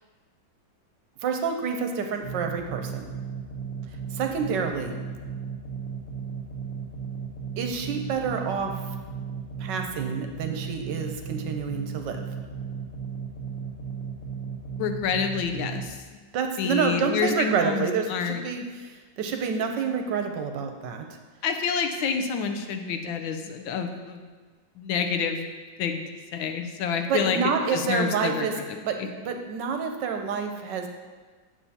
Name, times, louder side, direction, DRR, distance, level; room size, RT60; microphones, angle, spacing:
voice 1, 1.2-3.1 4.1-5.0 7.6-8.7 9.6-12.2 16.3-21.1 27.1-28.5 28.8-29.0 29.2-30.9, right 6 dB, 75° right, 5 dB, 1.2 m, -28 dB
sound 1, 2.2-15.8, right 6 dB, 55° left, 1.6 m, -35 dB
voice 2, 14.7-16.2 16.6-18.4 21.4-24.2 24.8-25.4 25.8-26.0 26.3-27.4 27.7-29.1, left 6 dB, 85° left, 6 dB, 1.4 m, -28 dB
8.4 x 7.0 x 2.8 m, 1.4 s
omnidirectional pair, 2.1 m